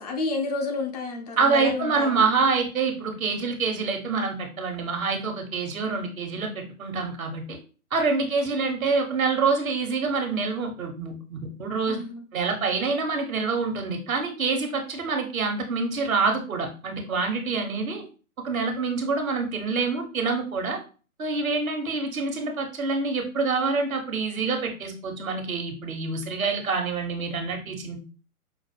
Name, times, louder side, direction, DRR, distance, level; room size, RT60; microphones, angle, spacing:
voice 1, 0.0-2.2 8.4-8.6 11.9-12.2, left 3 dB, 30° left, 3 dB, 0.7 m, -30 dB
voice 2, 1.4-7.6 7.9-12.0 12.3-18.0 18.4-20.8 21.2-28.0, right 4 dB, 70° right, 5 dB, 1.3 m, -26 dB
5.6 x 2.1 x 3.3 m, 0.36 s
figure-of-eight pair, 135°, 43 cm